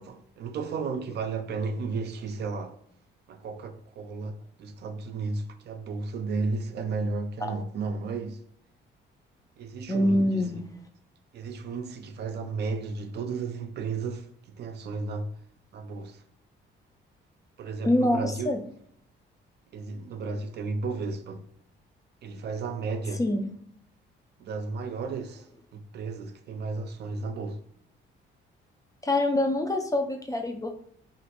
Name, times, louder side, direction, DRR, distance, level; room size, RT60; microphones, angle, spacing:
voice 1, 0.1-2.8 3.3-8.4 9.6-10.4 11.3-15.3 15.7-16.2 17.6-18.5 19.7-21.5 22.2-23.2 24.4-25.5 25.7-27.6, right 4 dB, 60° right, 0.4 m, -33 dB
voice 2, 9.9-10.6 17.8-18.6 23.2-23.5 29.0-30.7, left 1 dB, 15° left, 0.4 m, -25 dB
3.0 x 2.6 x 2.8 m
cardioid pair, 90°, 20 cm